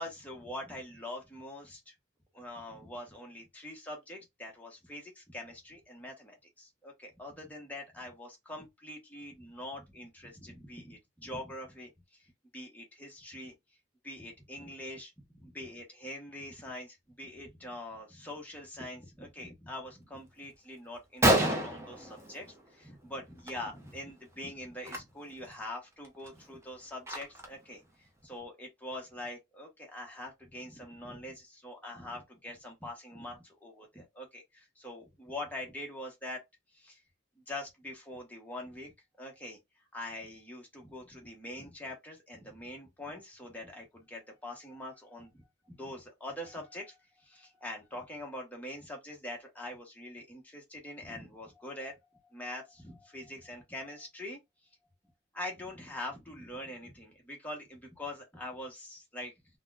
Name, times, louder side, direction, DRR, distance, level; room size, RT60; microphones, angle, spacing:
voice 1, 0.0-1.9 2.3-13.5 14.0-36.4 36.7-37.0 37.5-38.9 39.2-39.6 39.9-52.0 52.2-54.4 55.3-59.3, left 1 dB, 10° left, 1.0 m, -44 dB
Gunshot gunfire, 20.5-20.6 20.9-21.0 21.2-22.8 23.2-23.5 23.8-24.0 24.8-25.0 25.5-25.6 26.0-27.6, right 1 dB, 15° right, 0.6 m, -29 dB
4.1 x 2.2 x 2.4 m
head